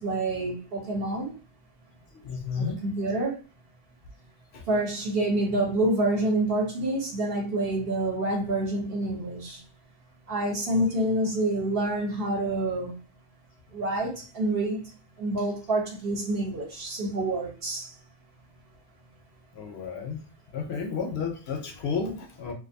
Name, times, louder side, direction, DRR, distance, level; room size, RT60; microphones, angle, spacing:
voice 1, 0.0-1.3 2.5-3.4 4.7-9.6 10.3-12.9 13.7-17.9, right 2 dB, 55° right, 0.9 m, -27 dB
voice 2, 2.2-2.8 4.5-4.6 19.5-20.2 20.5-22.5, left 5 dB, 65° left, 0.8 m, -32 dB
2.5 x 2.3 x 2.5 m
omnidirectional pair, 1.2 m